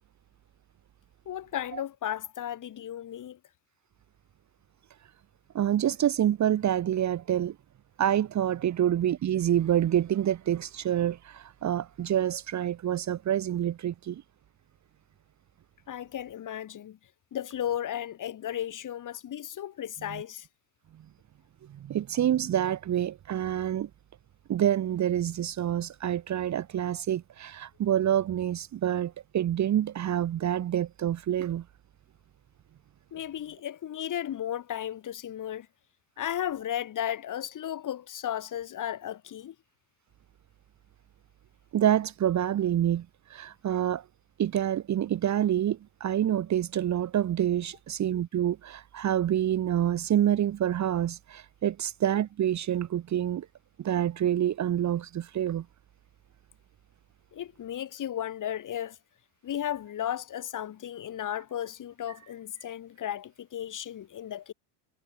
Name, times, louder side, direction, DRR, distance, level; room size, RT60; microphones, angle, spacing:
voice 1, 1.3-3.4 15.9-17.0 17.3-20.5 33.1-35.7 36.2-39.5 57.3-59.0 59.4-64.5, left 10 dB, 40° left, 3.5 m, -34 dB
voice 2, 5.5-7.5 8.0-14.2 20.1-20.2 21.8-23.9 24.5-31.6 41.7-43.0 43.3-44.0 44.4-53.5 53.8-55.6, right 11 dB, 35° right, 1.6 m, -27 dB
supercardioid pair, 95°, 49 cm